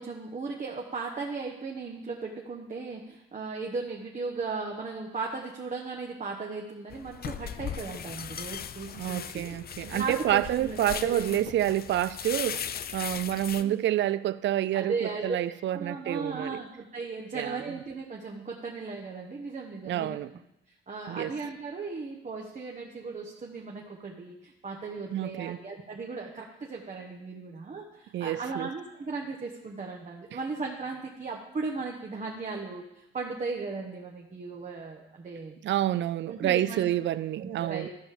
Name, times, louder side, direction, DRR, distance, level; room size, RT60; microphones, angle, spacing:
voice 1, 0.0-9.6 9.9-11.3 13.5-14.2 14.7-15.3 15.7-20.2 20.9-35.5 36.3-36.8 37.4-37.9, right 4 dB, 35° right, 1.2 m, -37 dB
sound 1, 6.9-13.6, left 9 dB, 45° left, 0.5 m, -38 dB
voice 2, 8.9-12.7 12.9-16.6 17.3-17.7 19.9-20.3 21.1-21.4 25.1-25.6 28.1-28.7 35.6-37.9, right 13 dB, 60° right, 0.4 m, -28 dB
13.5 x 5.1 x 5.0 m
cardioid pair, 75°, 21 cm